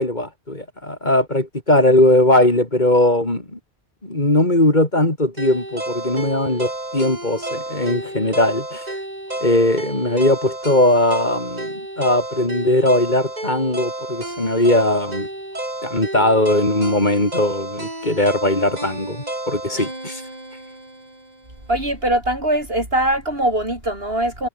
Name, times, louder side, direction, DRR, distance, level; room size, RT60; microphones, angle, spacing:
voice 1, 0.0-3.6 4.0-8.8 9.4-15.3 15.8-20.2, left 1 dB, 45° left, 4.3 m, -19 dB
sound 1, 5.4-21.5, right 1 dB, 40° right, 4.6 m, -31 dB
voice 2, 21.7-24.5, right 1 dB, 65° right, 8.2 m, -21 dB
omnidirectional pair, 1.1 m